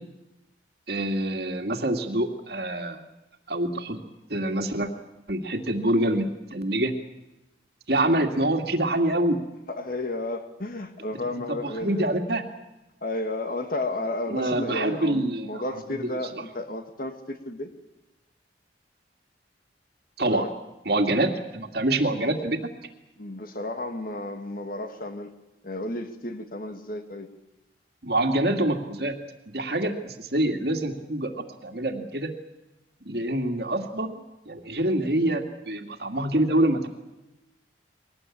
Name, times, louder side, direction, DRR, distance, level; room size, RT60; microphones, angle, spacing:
voice 1, 0.9-3.0 3.5-4.0 4.3-4.9 5.3-6.9 7.9-9.4 11.5-12.4 14.3-16.0 16.3-16.4 20.2-20.5 20.9-22.6 28.0-29.2 29.5-32.3 33.0-34.2 34.5-36.9, right 1 dB, 55° right, 5 dB, 2.2 m, -26 dB
voice 2, 9.7-12.2 13.0-17.7 20.3-20.5 23.2-25.3 25.6-27.3, left 1 dB, 50° left, 7 dB, 1.9 m, -32 dB
22.5 x 18.5 x 8.6 m, 0.97 s
head